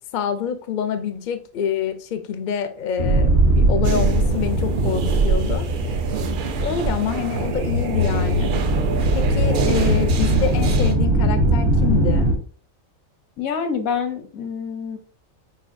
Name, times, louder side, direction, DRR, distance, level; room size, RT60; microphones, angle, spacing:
voice 1, 0.1-5.7 6.6-8.5 9.1-12.3, left 8 dB, 65° left, 9 dB, 0.5 m, -26 dB
sound 1, 3.0-12.3, right 1 dB, 65° right, 1.3 m, -20 dB
sound 2, 3.8-10.9, right 7 dB, 90° right, 0.4 m, -28 dB
voice 2, 13.4-15.0, left 6 dB, 85° left, 8 dB, 1.1 m, -26 dB
5.4 x 2.8 x 2.5 m, 0.43 s
omnidirectional pair, 1.4 m